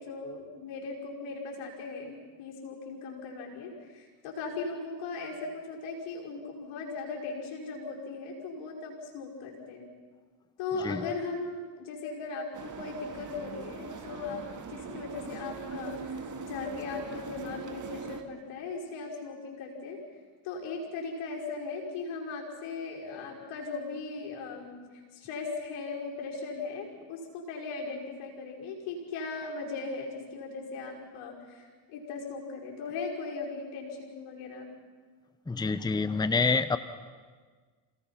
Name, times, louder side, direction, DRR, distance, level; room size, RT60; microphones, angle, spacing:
voice 1, 0.0-9.9 10.6-14.4 14.7-20.0 20.4-34.7, left 4 dB, 80° left, -1 dB, 5.6 m, -38 dB
sound 1, 12.5-18.2, right 5 dB, 35° right, 2.3 m, -41 dB
voice 2, 35.5-36.8, left 4 dB, 10° left, 13 dB, 0.8 m, -27 dB
27.5 x 18.5 x 5.8 m, 1.5 s
supercardioid pair, 85°, 50 cm